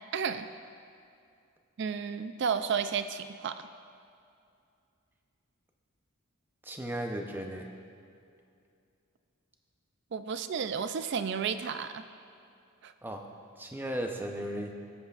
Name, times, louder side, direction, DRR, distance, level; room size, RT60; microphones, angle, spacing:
voice 1, 0.1-0.5 1.8-3.7 10.1-12.0 12.8-12.9, right 6 dB, 55° right, 10 dB, 0.4 m, -32 dB
voice 2, 6.6-7.7 13.0-13.2 13.6-14.7, right 1 dB, 10° right, 3 dB, 0.6 m, -35 dB
15.5 x 8.0 x 2.4 m, 2.5 s
head